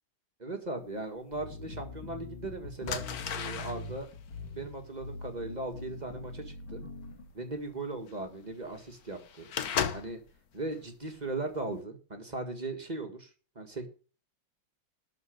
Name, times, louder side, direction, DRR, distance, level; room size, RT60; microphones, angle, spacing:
voice 1, 0.4-3.0 3.3-4.1 4.5-6.8 7.3-9.5 9.9-10.2 10.5-13.3 13.5-13.9, right 2 dB, 20° right, 5 dB, 1.7 m, -38 dB
sound 1, 1.3-7.3, left 3 dB, 85° left, 3.9 m, -43 dB
sound 2, 1.3-1.4 2.2-2.4 2.8-10.3 10.7-11.1 11.5-11.8, left 8 dB, 55° left, 1.3 m, -37 dB
12.5 x 5.0 x 7.9 m, 0.38 s
omnidirectional pair, 2.2 m